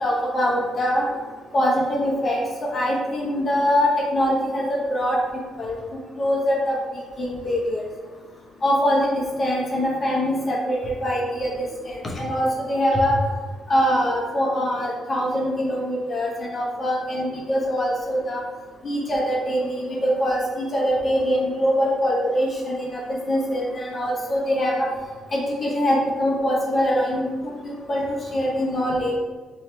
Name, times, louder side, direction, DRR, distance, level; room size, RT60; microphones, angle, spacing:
voice 1, 0.0-1.0 1.5-5.2 5.6-5.8 6.2-6.7 7.2-7.9 8.6-13.1 13.7-18.4 18.8-24.9 25.3-29.1, equal, 40° left, -3 dB, 0.8 m, -23 dB
3.0 x 2.8 x 4.3 m, 1.4 s
cardioid pair, 90°, 0 cm